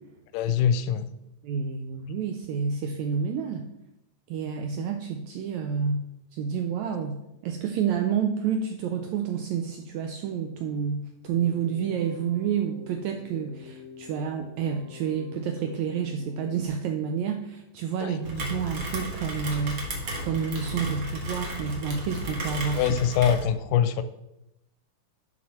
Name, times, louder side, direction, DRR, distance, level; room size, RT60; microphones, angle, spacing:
voice 1, 0.3-1.1 18.0-18.2 22.7-24.0, left 8 dB, 80° left, 12 dB, 2.0 m, -23 dB
voice 2, 1.4-3.7 4.3-6.0 6.3-19.9 20.2-23.0, right 7 dB, 85° right, 5 dB, 1.6 m, -29 dB
Keyboard (musical), 11.3-16.7, left 5 dB, 40° right, 1.0 m, -47 dB
Rain, 18.2-23.4, right 1 dB, 55° right, 1.3 m, -34 dB
11.5 x 4.7 x 4.2 m, 0.86 s
omnidirectional pair, 3.9 m